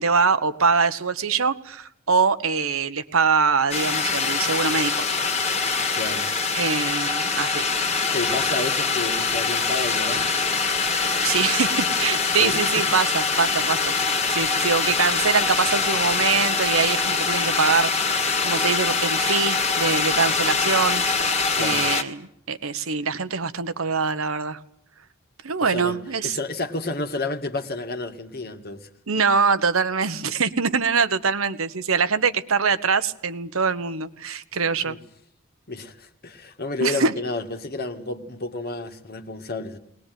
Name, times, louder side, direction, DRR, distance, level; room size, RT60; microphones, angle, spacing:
voice 1, 0.0-5.0 6.5-7.6 11.2-13.9 14.3-24.6 25.4-26.4 29.1-35.0 36.8-37.1, right 5 dB, 85° right, 1.3 m, -23 dB
sound 1, 3.7-22.0, left 4 dB, 30° left, 2.2 m, -23 dB
voice 2, 5.9-6.3 8.1-10.3 12.4-12.8 21.6-21.8 25.6-28.9 34.8-35.0 35.7-39.8, left 2 dB, 50° left, 2.0 m, -31 dB
21.0 x 20.0 x 9.4 m
head